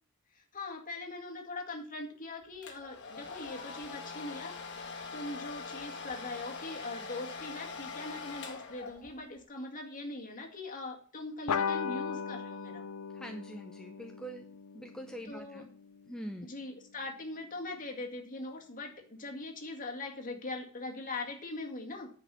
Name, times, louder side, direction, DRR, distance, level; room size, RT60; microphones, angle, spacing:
voice 1, 0.3-4.5 5.1-12.8 15.2-15.6 16.4-22.1, left 2 dB, 40° left, 2 dB, 2.0 m, -41 dB
Domestic sounds home sounds, 2.6-9.3, left 4 dB, 55° left, 1.7 m, -43 dB
sound 1, 11.5-16.4, left 6 dB, 80° left, 0.5 m, -38 dB
voice 2, 13.1-14.4 14.7-15.7 16.1-16.5, right 1 dB, 5° left, 3 dB, 0.6 m, -44 dB
10.0 x 5.0 x 6.8 m, 0.42 s
head